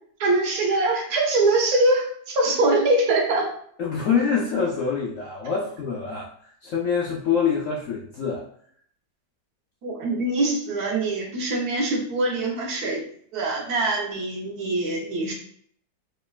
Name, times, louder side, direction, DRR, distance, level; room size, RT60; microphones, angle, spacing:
voice 1, 0.2-3.5 9.8-13.0 13.3-15.3, right 2 dB, 65° right, 0 dB, 1.2 m, -23 dB
voice 2, 3.8-8.4, left 6 dB, 65° left, -4 dB, 0.8 m, -25 dB
4.3 x 3.0 x 2.3 m, 0.62 s
omnidirectional pair, 1.9 m